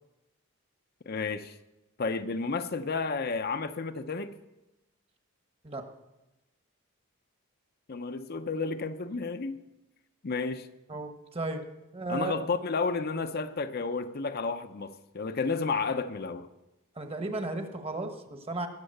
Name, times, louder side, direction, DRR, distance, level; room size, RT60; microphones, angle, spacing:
voice 1, 1.1-1.6 2.0-4.4 7.9-9.6 10.2-10.7 12.1-16.5, left 4 dB, 45° left, 8 dB, 0.6 m, -31 dB
voice 2, 10.9-11.6 11.9-12.3 17.0-18.7, right 2 dB, 25° right, 6 dB, 1.1 m, -34 dB
19.0 x 7.4 x 6.6 m, 0.99 s
head